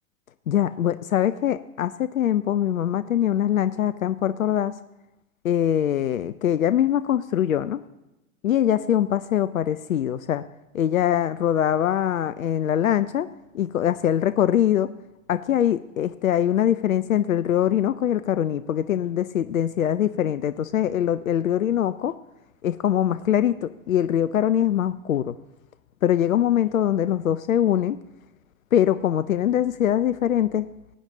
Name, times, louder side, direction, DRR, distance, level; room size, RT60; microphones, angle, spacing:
voice 1, 0.5-4.7 5.4-7.8 8.4-10.4 10.7-13.3 13.5-14.9 15.3-22.2 22.6-25.3 26.0-28.0 28.7-30.7, left 10 dB, 85° left, 14 dB, 0.5 m, -23 dB
19.0 x 8.8 x 3.9 m, 0.97 s
figure-of-eight pair, 100°, 40 cm